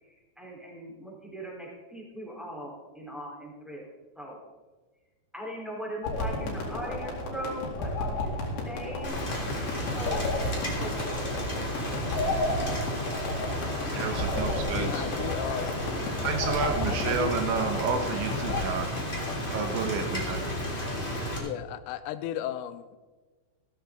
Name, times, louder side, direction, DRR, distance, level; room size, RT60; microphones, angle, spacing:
voice 1, 0.4-3.9 4.1-4.4 5.3-8.4 8.6-9.6 9.9-10.3 10.8-11.4, equal, ahead, -4 dB, 3.1 m, -39 dB
sound 1, 6.0-18.7, left 2 dB, 60° left, 4.5 m, -32 dB
Rain, 9.0-21.4, left 1 dB, 20° left, 1.5 m, -33 dB
voice 2, 13.9-15.1 16.2-20.4, right 5 dB, 70° right, 5 dB, 3.3 m, -31 dB
voice 3, 14.7-15.7 16.9-17.3 21.4-23.0, left 11 dB, 85° left, 12 dB, 3.1 m, -35 dB
15.5 x 14.5 x 3.9 m, 1.3 s
omnidirectional pair, 5.8 m